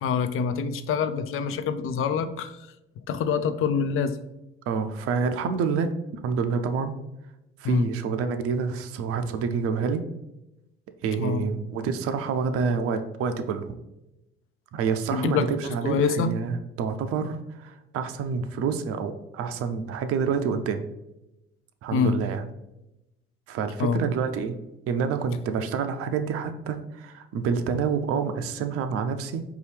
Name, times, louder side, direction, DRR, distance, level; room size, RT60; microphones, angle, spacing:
voice 1, 0.0-2.7 3.1-4.2 7.6-7.9 11.2-11.4 15.1-15.4 15.8-16.3 21.9-22.2 23.8-24.0, left 6 dB, 45° left, 10 dB, 0.5 m, -25 dB
voice 2, 4.7-5.9 6.2-7.0 7.6-10.0 11.0-13.6 14.7-20.9 21.8-22.4 23.5-24.6 24.9-29.4, right 6 dB, 50° right, 8 dB, 0.5 m, -28 dB
4.6 x 2.8 x 3.3 m, 0.91 s
hypercardioid pair, 55°, 30 cm